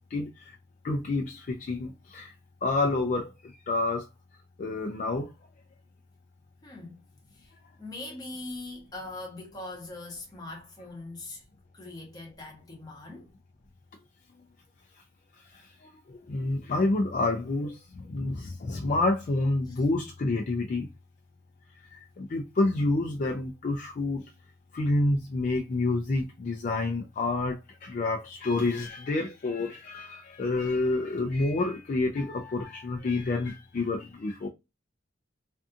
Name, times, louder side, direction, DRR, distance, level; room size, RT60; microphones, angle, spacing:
voice 1, 0.1-0.6 0.8-2.3 2.6-4.1 4.6-5.3 15.4-20.9 21.9-24.2 24.7-34.5, left 2 dB, 45° left, 0.3 m, -29 dB
voice 2, 6.6-7.0 7.3-7.5 7.8-11.4 11.7-13.3 19.7-19.8, left 2 dB, 20° left, 0.9 m, -41 dB
2.6 x 2.4 x 2.3 m
head